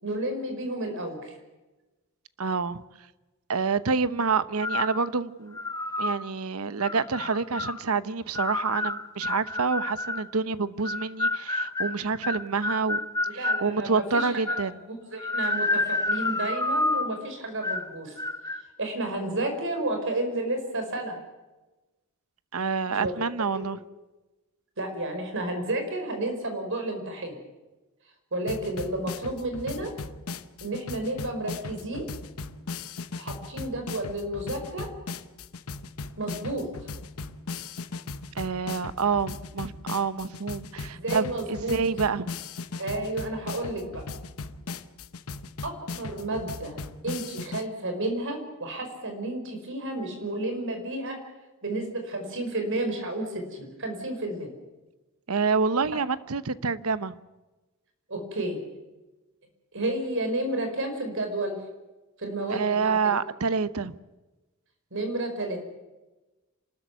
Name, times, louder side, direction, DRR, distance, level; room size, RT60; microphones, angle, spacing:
voice 1, 0.0-1.4 13.4-14.3 14.9-18.2 18.8-21.2 22.9-23.1 23.5-23.6 24.8-27.4 28.3-29.9 30.6-32.1 33.2-34.9 36.2-36.9 40.9-41.7 42.8-44.0 45.6-51.2 51.6-54.5 58.1-58.6 59.7-61.6 62.2-63.1 64.9-65.6, right 1 dB, 60° right, 5 dB, 5.2 m, -31 dB
voice 2, 2.4-2.8 3.5-5.6 6.0-13.0 13.3-14.8 22.5-23.8 38.3-42.3 55.3-57.2 62.5-63.9, right 5 dB, 80° right, 15 dB, 0.9 m, -27 dB
sound 1, 4.6-5.0 5.5-6.2 6.8-7.8 8.3-10.3 10.8-13.7 14.1-14.7 15.2-17.2 17.6-17.9 18.2-18.6, left 2 dB, 15° left, 1.0 m, -29 dB
sound 2, 28.5-47.6, left 4 dB, 80° left, 1.0 m, -38 dB
27.0 x 13.0 x 9.2 m, 1.1 s
head